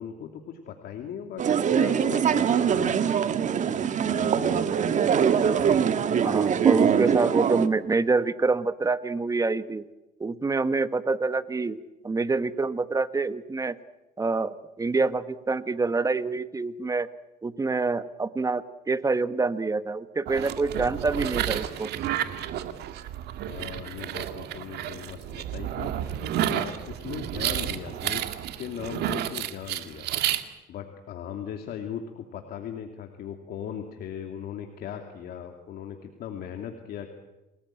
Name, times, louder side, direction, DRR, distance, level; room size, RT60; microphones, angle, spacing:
voice 1, 0.0-3.0 3.7-5.0 23.5-26.1 26.5-30.1 30.7-37.1, left 8 dB, 65° left, 4 dB, 2.6 m, -38 dB
sound 1, 1.4-7.7, right 7 dB, 45° right, 1.6 m, -23 dB
voice 2, 6.2-9.9 10.2-11.8 12.0-13.8 14.2-17.1 17.4-21.9, right 3 dB, 20° right, 13 dB, 1.2 m, -26 dB
sound 2, 20.3-30.4, right 11 dB, 75° right, 2.0 m, -31 dB
29.0 x 19.5 x 9.0 m, 1.0 s
cardioid pair, 110°, 17 cm